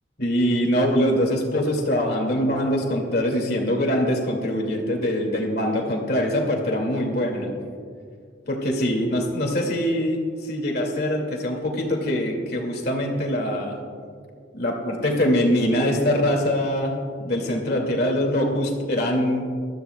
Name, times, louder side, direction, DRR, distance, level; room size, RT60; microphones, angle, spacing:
voice 1, 0.2-7.5 8.5-13.8 14.5-16.9 17.2-19.4, equal, 55° left, 1 dB, 2.3 m, -23 dB
22.5 x 13.5 x 2.3 m, 2.1 s
head